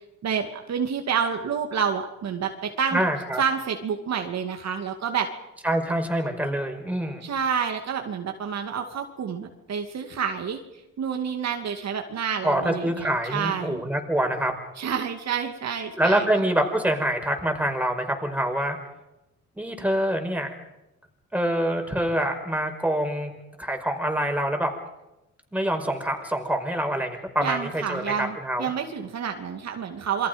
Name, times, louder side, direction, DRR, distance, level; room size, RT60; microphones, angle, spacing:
voice 1, 0.2-3.0 3.4-5.3 7.2-10.6 11.0-13.8 14.8-16.3 27.4-30.3, right 7 dB, 60° right, 5 dB, 2.5 m, -28 dB
voice 2, 2.9-3.4 5.6-7.2 12.4-14.5 16.0-18.8 19.6-20.5 21.3-24.7 25.5-28.7, right 1 dB, 5° right, 3 dB, 5.3 m, -25 dB
28.0 x 23.0 x 5.4 m, 0.95 s
cardioid pair, 90°, 30 cm